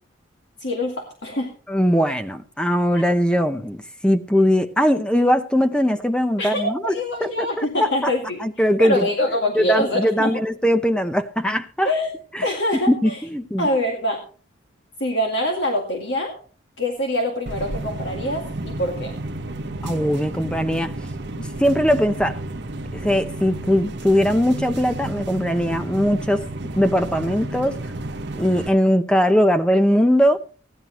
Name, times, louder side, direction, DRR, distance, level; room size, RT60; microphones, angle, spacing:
voice 1, 0.6-1.5 2.9-3.0 6.4-8.4 8.8-10.4 11.8-12.1 12.4-13.2 13.6-14.2 15.0-16.3 16.8-19.1, left 1 dB, 60° left, 1 dB, 2.1 m, -24 dB
voice 2, 1.7-6.9 7.2-8.1 8.4-9.1 9.5-11.9 12.3-12.5 12.7-13.7 19.8-20.9 21.4-22.4 22.9-26.5 26.8-27.8 28.3-30.4, equal, 5° left, 9 dB, 0.7 m, -20 dB
sound 1, 17.5-28.7, right 2 dB, 60° right, 1.0 m, -32 dB
15.5 x 11.0 x 3.0 m, 0.39 s
head